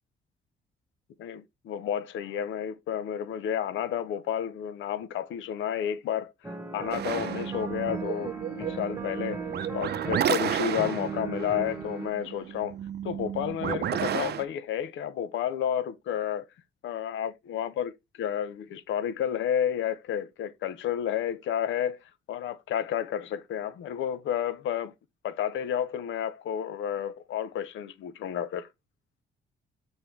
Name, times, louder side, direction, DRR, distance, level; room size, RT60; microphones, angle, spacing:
voice 1, 1.2-6.3 6.7-9.4 9.7-12.8 13.0-16.5 16.8-17.9 18.2-22.0 22.3-24.9 25.2-28.7, left 9 dB, 75° left, 0.8 m, -31 dB
sound 1, 6.4-12.1, right 3 dB, 15° right, 1.3 m, -38 dB
sound 2, 6.9-14.4, right 10 dB, 55° right, 0.6 m, -32 dB
6.8 x 4.4 x 3.2 m
cardioid pair, 90°, 20 cm